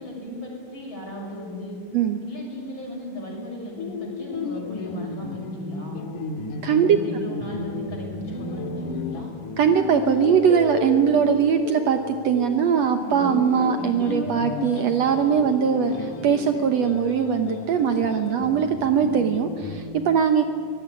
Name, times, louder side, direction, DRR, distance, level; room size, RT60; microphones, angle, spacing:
voice 1, 0.0-1.8 2.2-6.0 6.7-9.3, left 1 dB, 35° left, -1 dB, 7.5 m, -36 dB
sound 1, 3.8-19.8, left 4 dB, 75° left, 3.1 m, -33 dB
voice 2, 6.6-7.0 9.6-20.4, right 7 dB, 65° right, 7 dB, 2.0 m, -21 dB
24.5 x 18.5 x 9.9 m, 2.1 s
omnidirectional pair, 3.6 m